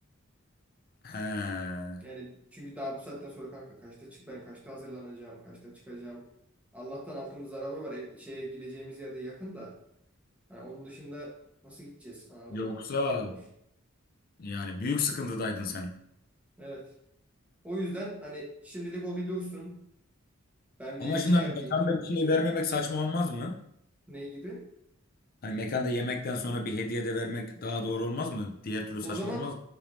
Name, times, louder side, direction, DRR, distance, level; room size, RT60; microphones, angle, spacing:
voice 1, 1.0-2.0 12.5-13.4 14.4-15.9 21.0-23.6 25.4-29.5, left 2 dB, 45° left, 1 dB, 0.5 m, -30 dB
voice 2, 2.0-6.3 6.7-9.7 10.5-11.3 11.6-12.8 13.2-13.3 16.6-16.9 17.6-19.8 20.8-21.8 24.1-24.6 29.0-29.5, right 1 dB, 5° right, -4 dB, 1.1 m, -40 dB
5.8 x 3.4 x 2.6 m, 0.76 s
head